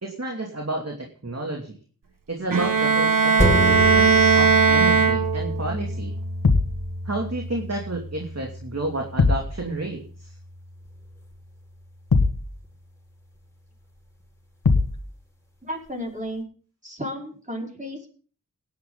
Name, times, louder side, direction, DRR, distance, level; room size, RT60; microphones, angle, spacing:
voice 1, 0.0-1.7 2.3-6.1 7.0-10.3, right 2 dB, 50° right, 1 dB, 2.8 m, -31 dB
Bowed string instrument, 2.5-5.7, right 5 dB, 75° right, 1.4 m, -18 dB
sound 1, 3.4-12.2 12.6-12.7, equal, 10° left, 5.9 m, -29 dB
sound 2, 6.4-6.8 9.2-9.5 12.1-12.5 14.6-15.0, left 4 dB, 85° left, 1.6 m, -20 dB
voice 2, 15.6-16.4 16.8-18.1, equal, 20° right, 0 dB, 5.1 m, -33 dB
17.5 x 10.5 x 4.0 m, 0.42 s
wide cardioid pair, 45°, 34 cm